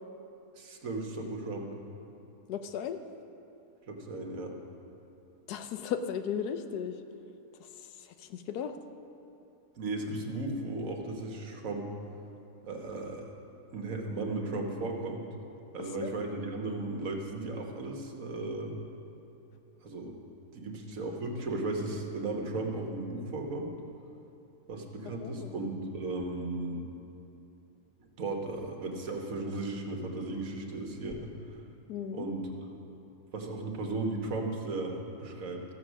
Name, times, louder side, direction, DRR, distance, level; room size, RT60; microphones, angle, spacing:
voice 1, 0.6-1.7 3.9-4.5 9.8-11.9 12.6-13.3 13.7-15.3 15.7-18.7 19.8-20.1 20.5-23.7 24.7-26.9 28.2-31.3 32.1-32.5 33.3-35.6, right 2 dB, 60° right, 2 dB, 1.5 m, -35 dB
voice 2, 2.5-3.0 5.5-7.0 7.8-8.7 16.0-16.1 25.0-25.5 31.9-32.3, left 8 dB, 80° left, 8 dB, 1.2 m, -36 dB
14.5 x 7.0 x 6.2 m, 2.8 s
omnidirectional pair, 1.7 m